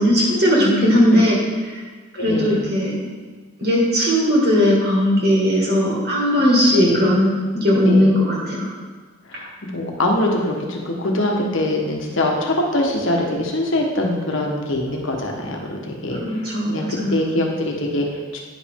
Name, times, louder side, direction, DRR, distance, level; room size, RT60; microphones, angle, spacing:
voice 1, 0.0-1.4 2.2-3.0 3.6-8.7 16.2-17.2, equal, 50° right, -4 dB, 1.8 m, -18 dB
voice 2, 0.6-1.2 2.2-2.6 6.7-7.1 7.8-8.1 9.2-18.4, left 1 dB, 80° left, 0 dB, 1.2 m, -23 dB
9.6 x 5.2 x 3.6 m, 1.4 s
head